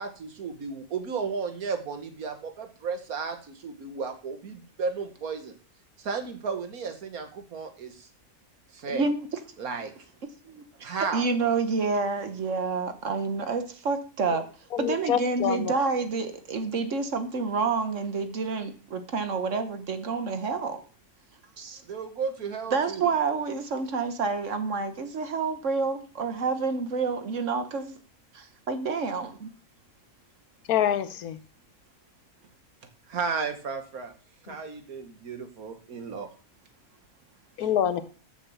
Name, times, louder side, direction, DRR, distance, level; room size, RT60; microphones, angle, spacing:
voice 1, 0.0-3.4 3.6-5.5 6.0-7.9 8.8-9.0 9.6-9.9 10.8-11.3 21.9-23.1 33.1-34.1 34.5-36.3, right 5 dB, 75° right, 1.8 m, -33 dB
voice 2, 8.9-9.2 10.4-14.5 14.8-20.8 21.6-21.8 22.7-28.0 28.3-29.5, right 4 dB, 55° right, 1.4 m, -28 dB
voice 3, 14.7-15.7 30.7-31.4 34.5-34.6 37.6-38.0, left 9 dB, 80° left, 1.3 m, -26 dB
7.1 x 6.0 x 7.1 m
omnidirectional pair, 1.6 m